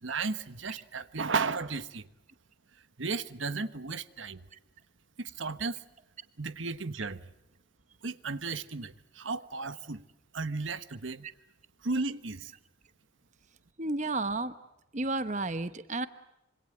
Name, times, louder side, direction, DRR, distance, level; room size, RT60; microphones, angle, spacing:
voice 1, 0.0-2.1 3.0-4.4 5.2-5.8 6.4-7.2 8.0-10.0 10.3-11.3 11.8-12.5, right 4 dB, 85° right, 1.3 m, -34 dB
voice 2, 13.8-14.6 14.9-16.1, right 2 dB, 40° right, 1.0 m, -31 dB
26.5 x 25.0 x 7.8 m
head